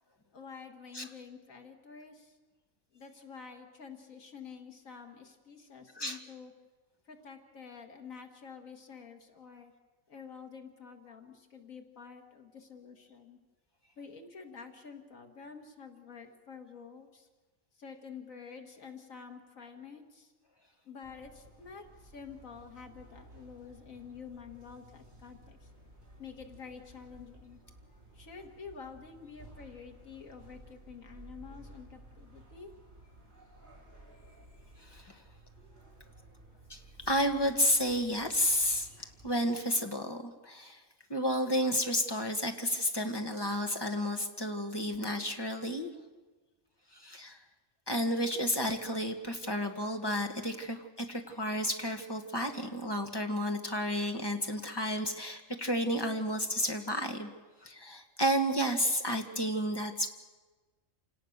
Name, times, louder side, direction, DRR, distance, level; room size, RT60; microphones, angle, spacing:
voice 1, 0.3-2.4 2.9-6.5 7.1-9.7 10.1-13.4 14.0-17.3 17.8-20.3 20.9-25.7 26.2-27.6 28.1-32.7, left 6 dB, 85° left, 5 dB, 2.2 m, -49 dB
sound 1, 21.0-39.3, right 1 dB, 40° right, 5.2 m, -55 dB
voice 2, 34.9-35.2 36.7-36.8 37.1-40.8 41.1-45.9 46.9-47.4 47.9-57.3 57.6-60.1, equal, 20° left, 4 dB, 1.8 m, -31 dB
27.5 x 18.0 x 6.7 m, 1.3 s
omnidirectional pair, 1.4 m